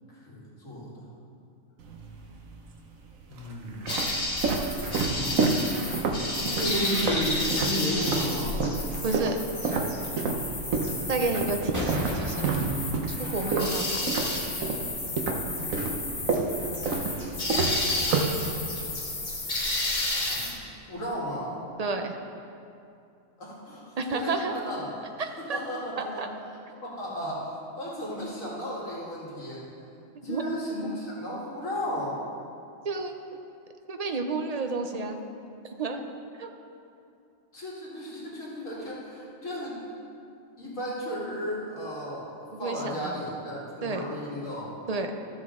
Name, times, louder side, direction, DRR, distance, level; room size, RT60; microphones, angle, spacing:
voice 1, 0.1-1.0 3.3-4.0 4.7-5.5 6.5-8.6 20.1-20.5 20.8-21.5 23.4-24.8 25.5-26.2 26.8-29.7 30.2-32.2 37.5-39.8 40.6-42.3 42.6-44.7, equal, 80° left, -6 dB, 2.4 m, -34 dB
sound 1, 1.8-2.5 3.2-8.3 8.6-14.9 15.2-18.9, right 4 dB, 85° right, 1.2 m, -29 dB
sound 2, 3.9-20.5, left 2 dB, 35° left, 1.4 m, -32 dB
voice 2, 9.0-9.4 11.1-12.5 13.1-14.1 21.8-22.1 24.0-24.6 25.2-25.6 26.2-26.3 30.2-30.4 32.8-33.2 33.9-35.2 35.6-36.1 36.4-36.5 42.5-43.2 43.8-44.0 44.9-45.1, right 3 dB, 50° right, 5 dB, 0.5 m, -30 dB
sound 3, 11.7-14.5, equal, 15° right, 1.7 m, -35 dB
13.5 x 7.3 x 3.7 m, 2.6 s
omnidirectional pair, 1.4 m